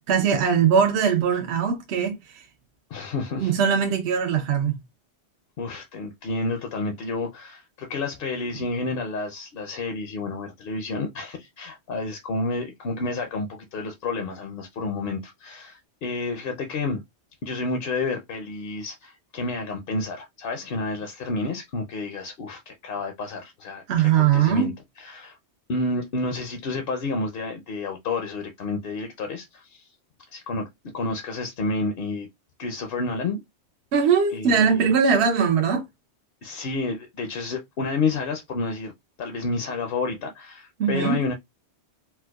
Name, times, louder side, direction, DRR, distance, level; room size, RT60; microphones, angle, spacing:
voice 1, 0.1-2.4 3.4-4.8 23.9-24.7 33.9-35.8 40.8-41.2, right 7 dB, 70° right, 0.9 m, -21 dB
voice 2, 2.9-3.5 5.6-17.0 17.4-24.7 25.0-25.4 25.7-29.9 30.3-30.7 30.9-32.3 32.6-33.4 34.3-35.1 36.4-38.9 39.2-41.3, left 3 dB, 60° left, 0.7 m, -30 dB
4.4 x 2.1 x 2.3 m
omnidirectional pair, 1.2 m